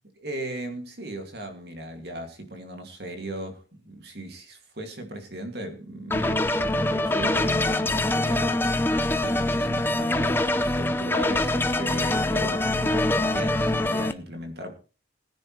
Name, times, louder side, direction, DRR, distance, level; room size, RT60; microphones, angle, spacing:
voice 1, 0.2-14.8, right 1 dB, 55° right, 2.4 m, -37 dB
sound 1, 6.1-14.1, left 1 dB, 10° left, 0.6 m, -24 dB
19.5 x 10.0 x 3.2 m
head